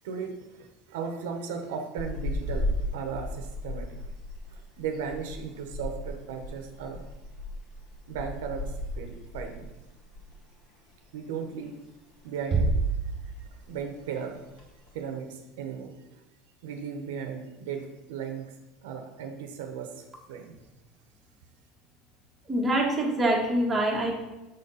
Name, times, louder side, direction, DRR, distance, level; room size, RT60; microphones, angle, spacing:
voice 1, 0.0-4.1 4.5-7.1 8.1-9.7 11.1-11.8 12.2-12.7 13.7-14.4 14.9-16.2 16.6-18.6 18.8-20.5, right 6 dB, 85° right, 4 dB, 1.0 m, -36 dB
sound 1, 2.0-10.5 10.7-11.0 11.4-12.2 12.5-12.9 13.2-13.3 13.4-13.9 14.4-14.9, left 1 dB, 50° left, 2.0 m, -36 dB
Bass drum, 12.5-13.9, right 4 dB, 35° right, 1.0 m, -27 dB
voice 2, 22.5-24.1, right 1 dB, 10° right, -2 dB, 1.8 m, -25 dB
7.2 x 4.1 x 5.5 m, 1.0 s
supercardioid pair, 115°, 0 cm